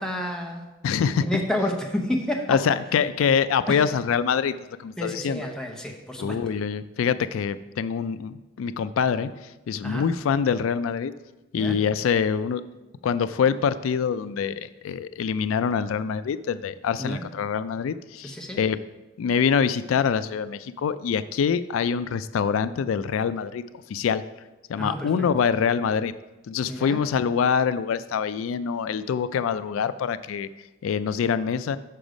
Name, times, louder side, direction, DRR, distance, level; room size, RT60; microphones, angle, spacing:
voice 1, 0.0-0.7 1.2-2.6 3.7-3.8 5.0-6.4 9.8-10.1 11.5-11.8 17.0-17.2 18.2-18.6 24.7-25.1 26.7-27.0, left 1 dB, 5° left, 1 dB, 0.8 m, -29 dB
voice 2, 0.8-1.4 2.5-4.5 4.8-5.5 6.2-11.1 11.5-12.6 13.0-18.8 19.2-23.6 23.9-24.2 24.7-26.1 26.5-30.5 30.8-31.8, left 6 dB, 85° left, 14 dB, 0.3 m, -25 dB
6.6 x 6.1 x 5.1 m, 1.1 s
head